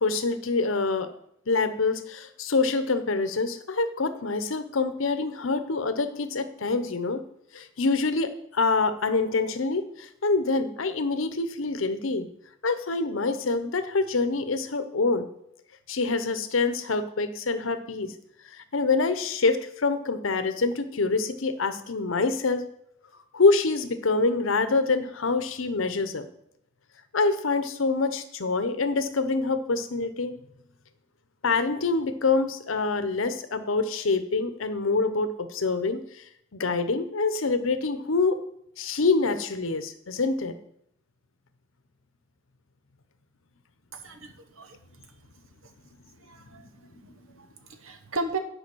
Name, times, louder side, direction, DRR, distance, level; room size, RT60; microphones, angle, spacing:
voice 1, 0.0-1.1 1.5-7.2 7.5-12.3 12.6-15.3 15.9-18.1 18.7-22.7 23.3-26.3 27.1-30.3 31.4-36.0 36.5-38.4 38.8-40.5, left 3 dB, 70° left, 10 dB, 0.8 m, -26 dB
voice 2, 43.9-45.1 45.6-45.7 46.2-48.4, right 3 dB, 85° right, 7 dB, 1.1 m, -37 dB
10.0 x 5.1 x 6.2 m, 0.74 s
head